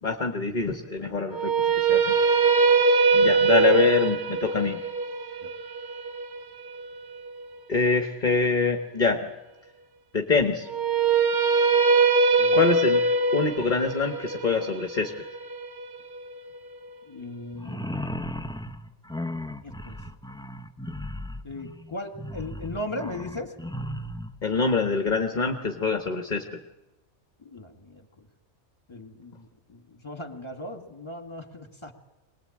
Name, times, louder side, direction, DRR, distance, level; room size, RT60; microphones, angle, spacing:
voice 1, 0.0-1.5 1.9-2.2 3.1-4.8 7.7-9.2 10.1-10.7 12.5-13.0 13.3-15.1 24.4-26.4, left 4 dB, 40° left, 6 dB, 1.4 m, -25 dB
sound 1, 1.3-7.4 10.7-16.7, right 4 dB, 60° right, 1.4 m, -22 dB
voice 2, 17.1-17.9 19.6-20.0 21.4-23.5 27.4-28.3 28.9-31.9, left 1 dB, 25° left, 7 dB, 2.2 m, -38 dB
sound 2, 17.5-24.4, left 1 dB, 5° left, 0.9 m, -36 dB
24.0 x 20.0 x 8.7 m, 1.0 s
omnidirectional pair, 1.3 m